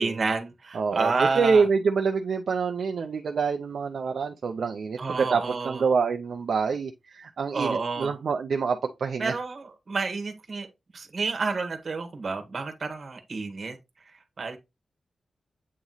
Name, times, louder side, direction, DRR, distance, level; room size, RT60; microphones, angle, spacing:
voice 1, 0.0-1.6 5.0-5.8 7.5-8.1 9.2-10.7 10.9-13.8 14.4-14.6, right 4 dB, 45° right, 1.4 m, -29 dB
voice 2, 0.7-9.4, right 5 dB, 70° right, 0.6 m, -26 dB
8.4 x 3.0 x 4.0 m
wide cardioid pair, 165°, 0 cm